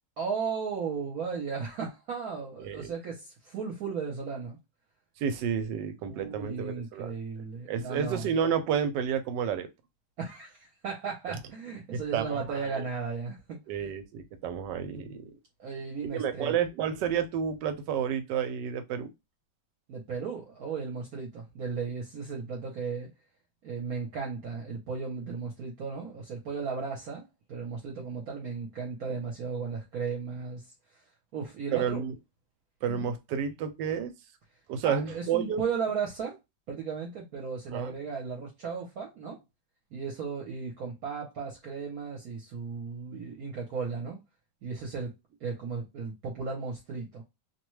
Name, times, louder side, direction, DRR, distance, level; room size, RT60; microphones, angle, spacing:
voice 1, 0.2-4.6 6.0-8.2 10.2-13.6 15.6-16.6 19.9-23.1 23.6-30.6 31.3-32.0 32.9-33.1 34.8-36.4 36.7-39.4 39.9-44.2 44.6-45.1 45.4-47.2, right 5 dB, 60° right, 1.1 m, -35 dB
voice 2, 2.6-2.9 5.2-7.1 7.7-9.7 11.3-11.4 11.9-12.9 13.7-15.3 16.1-19.1 31.7-32.1 32.8-34.1 34.7-35.7 37.7-38.0, right 8 dB, 80° right, 1.2 m, -30 dB
2.8 x 2.2 x 3.1 m
omnidirectional pair, 1.9 m